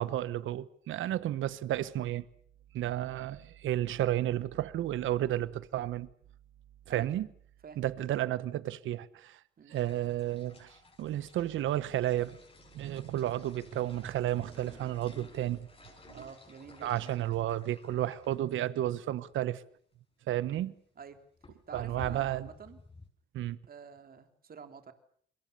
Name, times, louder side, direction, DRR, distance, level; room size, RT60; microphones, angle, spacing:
voice 1, 0.0-2.2 2.7-6.1 6.9-7.3 7.8-9.4 9.7-10.7 11.0-12.4 12.7-15.7 16.1-16.2 16.8-19.6 20.3-20.7 21.7-22.5 23.3-23.6, right 13 dB, 85° right, 1.1 m, -32 dB
sound 1, 9.7-18.7 19.0-19.1 19.3-19.4 20.4-20.6 21.0-23.1, left 3 dB, 30° left, 6.1 m, -54 dB
Drum, 13.7-15.7, right 3 dB, 30° right, 7.2 m, -51 dB
voice 2, 16.1-17.3 21.0-21.2 21.7-22.8 23.7-24.9, right 6 dB, 50° right, 3.3 m, -48 dB
28.5 x 22.5 x 6.9 m
cardioid pair, 85°, 20 cm